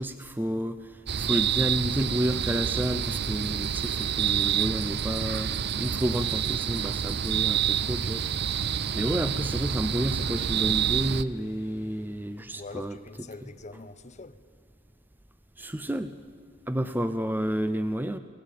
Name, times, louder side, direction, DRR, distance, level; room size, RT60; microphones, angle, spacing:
voice 1, 0.0-5.5 5.8-8.2 8.5-13.0 15.6-16.1 16.7-18.2, equal, 10° right, 0.6 m, -30 dB
sound 1, 1.1-11.2, right 8 dB, 60° right, 0.5 m, -28 dB
Domestic sounds home sounds, 1.7-12.7, left 2 dB, 55° left, 3.4 m, -58 dB
voice 2, 12.5-14.4 16.9-17.1, left 3 dB, 35° left, 0.9 m, -44 dB
24.0 x 18.0 x 8.5 m
head